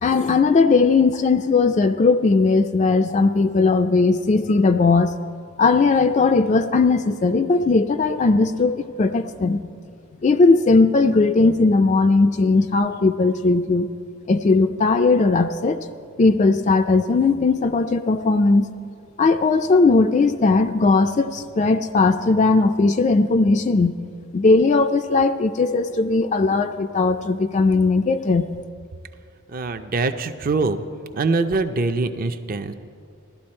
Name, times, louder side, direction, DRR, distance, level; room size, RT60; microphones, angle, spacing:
voice 1, 0.0-5.1 5.6-9.6 10.2-13.9 14.3-15.8 16.2-18.7 19.2-23.9 24.3-28.4, left 3 dB, 35° left, 8 dB, 0.3 m, -18 dB
voice 2, 29.5-30.8 31.1-32.7, right 3 dB, 40° right, 9 dB, 0.5 m, -23 dB
16.0 x 12.0 x 4.3 m, 2.3 s
head